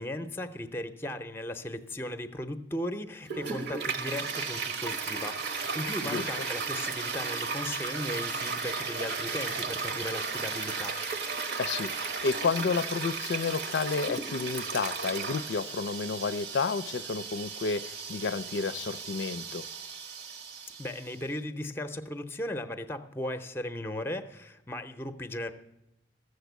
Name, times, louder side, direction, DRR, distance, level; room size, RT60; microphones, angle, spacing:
voice 1, 0.0-11.0 20.8-25.5, left 1 dB, 15° left, 10 dB, 0.6 m, -37 dB
Toilet flush, 3.2-21.2, right 4 dB, 65° right, 1.0 m, -35 dB
voice 2, 11.6-19.7, left 4 dB, 85° left, 15 dB, 0.4 m, -31 dB
14.5 x 6.7 x 8.0 m, 0.88 s
head